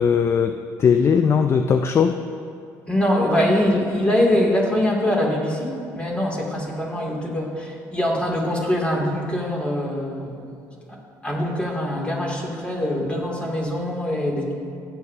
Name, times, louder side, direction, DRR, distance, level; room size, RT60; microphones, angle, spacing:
voice 1, 0.0-2.2, left 6 dB, 35° left, 7 dB, 0.4 m, -19 dB
voice 2, 2.9-10.5 10.9-11.0 11.2-14.5, left 1 dB, 15° left, -2 dB, 2.5 m, -23 dB
16.0 x 8.4 x 2.7 m, 2.6 s
cardioid pair, 95°, 7 cm